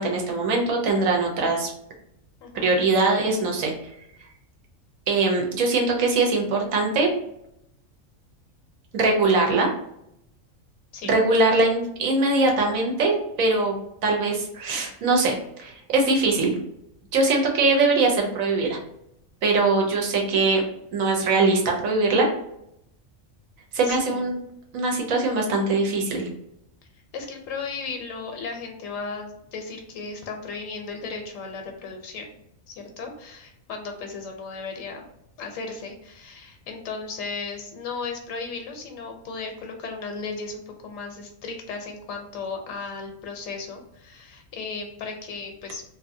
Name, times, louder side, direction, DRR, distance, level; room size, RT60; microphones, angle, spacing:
voice 1, 0.0-1.7 2.5-3.7 5.1-7.1 8.9-9.7 11.0-13.8 14.0-16.5 17.1-18.8 19.4-20.6 20.9-22.3 23.7-24.3 24.7-26.3, right 3 dB, 80° right, 1 dB, 1.2 m, -22 dB
voice 2, 2.4-2.8 10.9-11.1 23.8-24.3 27.1-32.3 32.7-35.0 35.4-45.8, left 4 dB, 75° left, 3 dB, 1.0 m, -35 dB
2.7 x 2.6 x 2.5 m, 0.78 s
omnidirectional pair, 1.4 m